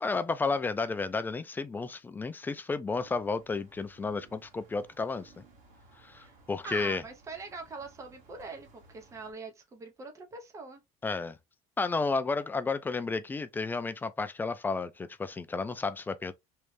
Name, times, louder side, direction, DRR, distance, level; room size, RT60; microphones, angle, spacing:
voice 1, 0.0-5.4 6.0-7.0 11.0-11.4 11.8-16.3, left 4 dB, 15° left, 0.3 m, -32 dB
sound 1, 2.9-9.3, right 3 dB, 65° right, 1.6 m, -59 dB
voice 2, 6.6-10.8, right 4 dB, 20° right, 0.8 m, -43 dB
3.2 x 2.4 x 3.2 m
cardioid pair, 145°, 14 cm